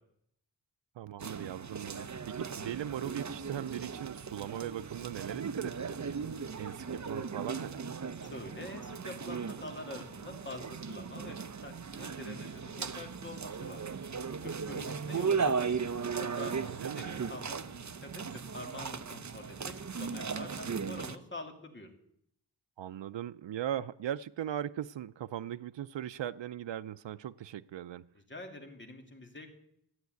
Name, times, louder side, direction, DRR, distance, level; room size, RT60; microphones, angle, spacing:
voice 1, 1.0-6.3 6.6-7.9 16.7-17.3 22.8-28.1, right 11 dB, 90° right, 12 dB, 0.6 m, -39 dB
sound 1, 1.2-21.2, right 5 dB, 40° right, 0.8 m, -37 dB
voice 2, 8.2-13.8 14.4-15.8 16.2-18.2 18.5-21.9 28.3-29.5, left 2 dB, 25° left, 3 dB, 2.8 m, -46 dB
14.5 x 9.2 x 9.4 m, 0.72 s
wide cardioid pair, 115°, 42 cm